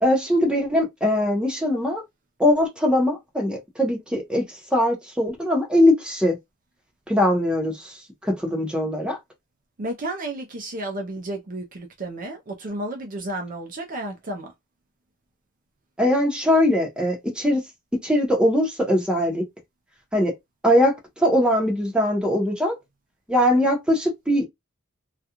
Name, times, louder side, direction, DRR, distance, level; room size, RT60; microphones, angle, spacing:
voice 1, 0.0-2.0 2.4-6.4 7.1-8.0 8.2-9.2 16.0-17.6 18.0-19.4 20.1-20.3 20.6-22.8 23.3-24.5, left 1 dB, 5° right, 0.8 m, -21 dB
voice 2, 9.8-14.5, right 1 dB, 40° right, 0.5 m, -32 dB
2.4 x 2.3 x 2.9 m
head